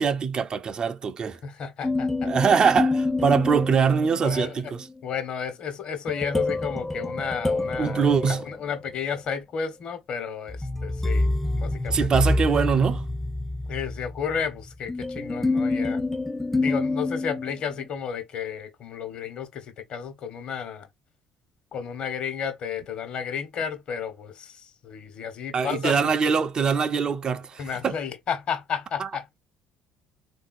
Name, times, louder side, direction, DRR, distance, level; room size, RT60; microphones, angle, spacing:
voice 1, 0.0-1.4 2.2-4.9 7.8-8.4 11.9-13.1 25.5-28.0 29.0-29.1, right 6 dB, 40° right, 0.6 m, -23 dB
voice 2, 1.4-2.3 4.2-4.6 5.0-12.1 13.7-16.0 16.5-20.9 21.7-26.1 27.6-29.4, left 7 dB, 55° left, 1.3 m, -32 dB
sound 1, 1.8-4.4 6.1-9.1 10.5-17.8, left 2 dB, 10° left, 0.4 m, -27 dB
3.8 x 2.7 x 2.6 m
hypercardioid pair, 60°, 2 cm